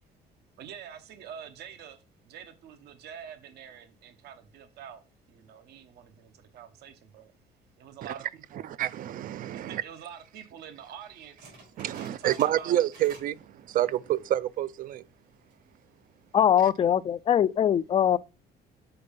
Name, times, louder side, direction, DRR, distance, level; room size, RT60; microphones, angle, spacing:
voice 1, 0.6-7.3 7.8-8.6 9.5-11.5 11.9-12.8, right 8 dB, 70° right, 0.9 m, -46 dB
voice 2, 8.6-9.8 11.8-15.0, right 12 dB, 55° right, 0.4 m, -28 dB
sound 1, 11.4-13.4 13.7-14.1 14.5-14.6 15.3-15.7, right 2 dB, 90° right, 4.3 m, -50 dB
voice 3, 16.3-18.2, left 9 dB, 30° left, 0.3 m, -22 dB
6.8 x 4.4 x 5.2 m
cardioid pair, 110°, 17 cm